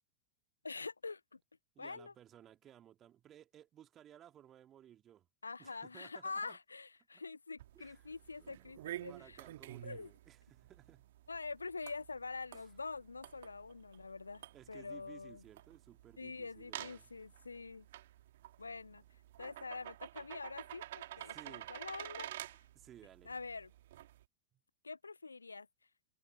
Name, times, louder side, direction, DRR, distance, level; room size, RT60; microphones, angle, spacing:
voice 1, 0.6-1.4 1.8-2.1 5.4-9.4 9.8-10.1 11.3-15.4 16.2-17.9 18.6-19.0 19.4-22.3 23.2-23.7 24.8-25.7, left 4 dB, 80° left, 0.6 m, -45 dB
voice 2, 1.7-5.3 5.6-6.6 7.1-7.2 7.7-8.0 8.4-11.1 12.5-12.7 14.5-17.1 21.2-21.7 22.7-23.3 24.5-24.6, right 11 dB, 30° right, 2.2 m, -59 dB
sound 1, 7.6-24.2, right 14 dB, 55° right, 2.3 m, -51 dB
figure-of-eight pair, 90°, 0 cm